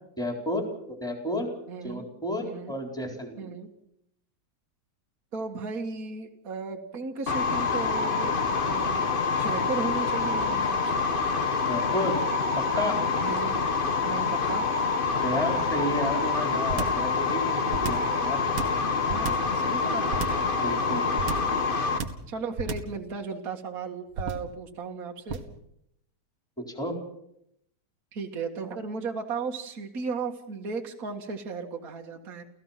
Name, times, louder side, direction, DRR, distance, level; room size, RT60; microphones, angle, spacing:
voice 1, 0.2-1.5 1.8-3.5 11.7-12.2 12.6-13.0 15.2-18.4 20.6-21.1 26.7-27.0, left 1 dB, ahead, 3 dB, 4.0 m, -31 dB
voice 2, 1.7-2.1 2.4-2.7 3.4-3.7 5.3-9.1 9.4-11.0 13.2-13.6 14.0-14.6 19.1-20.4 22.3-25.4 28.1-32.4, right 4 dB, 45° right, 2 dB, 2.2 m, -35 dB
sound 1, 7.3-22.0, left 4 dB, 30° left, 1.1 m, -26 dB
sound 2, 16.7-17.1 17.7-18.1 18.6-19.6 20.1-20.5 21.2-21.6 22.0-22.3 22.6-23.0 24.1-24.5 25.3-25.6, right 4 dB, 75° right, 2.5 m, -32 dB
30.0 x 16.0 x 5.8 m, 0.74 s
omnidirectional pair, 2.3 m